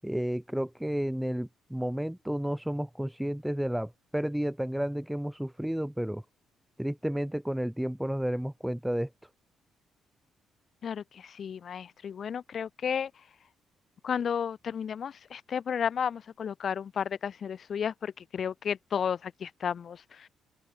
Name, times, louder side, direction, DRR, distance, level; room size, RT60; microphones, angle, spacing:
voice 1, 0.0-6.2 6.8-9.1, equal, 5° right, 7.1 m, -31 dB
voice 2, 10.8-13.1 14.0-20.3, left 7 dB, 55° left, 7.1 m, -33 dB
open air
cardioid pair, 90°, 0 cm